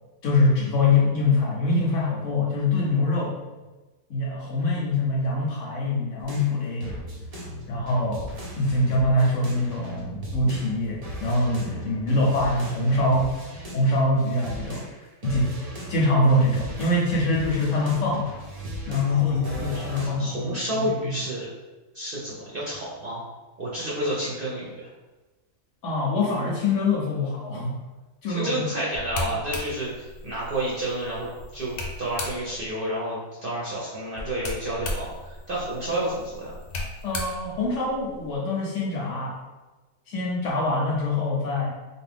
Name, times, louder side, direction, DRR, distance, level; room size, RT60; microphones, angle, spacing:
voice 1, 0.2-3.4 4.1-7.0 7.7-8.3 8.6-13.3 13.7-15.5 15.9-18.3 18.9-20.5 20.8-21.1 25.8-27.8 28.2-28.5 37.0-39.4 40.1-41.7, left 2 dB, 65° left, -3 dB, 0.9 m, -24 dB
sound 1, 6.2-15.0 15.2-20.1, right 1 dB, 65° right, 0.3 m, -38 dB
voice 2, 19.1-21.5 21.9-23.2 23.6-24.9 28.3-36.6, right 1 dB, 50° right, -6 dB, 0.7 m, -30 dB
sound 2, 28.9-32.7 34.2-38.4, left 2 dB, 85° left, 1.2 m, -36 dB
2.7 x 2.6 x 3.4 m, 1.2 s
omnidirectional pair, 1.6 m